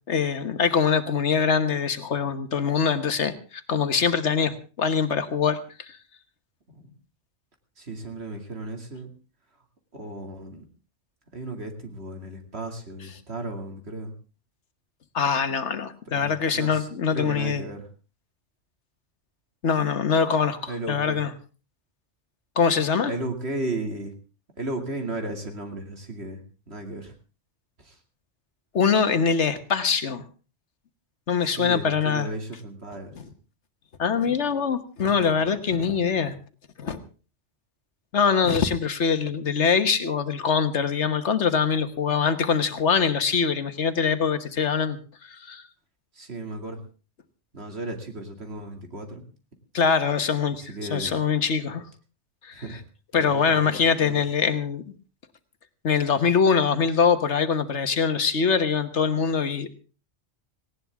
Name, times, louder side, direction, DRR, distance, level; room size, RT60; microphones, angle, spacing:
voice 1, 0.1-6.0 15.1-17.6 19.6-21.3 22.6-23.1 28.7-30.2 31.3-32.3 34.0-36.4 36.8-37.0 38.1-45.0 45.2-45.6 49.7-50.6 50.9-51.8 52.4-52.6 53.1-54.8 55.8-59.7, left 6 dB, 75° left, 10 dB, 1.6 m, -23 dB
voice 2, 7.8-9.1 9.9-10.6 11.3-14.1 16.1-17.9 20.7-21.2 23.1-24.1 24.6-27.2 27.8-28.0 31.4-33.1 46.1-46.8 47.5-49.2 50.5-51.2 52.5-52.8 53.1-54.2 59.3-59.4, right 2 dB, 65° right, 4 dB, 2.7 m, -35 dB
18.5 x 17.5 x 3.6 m, 0.36 s
omnidirectional pair, 1.2 m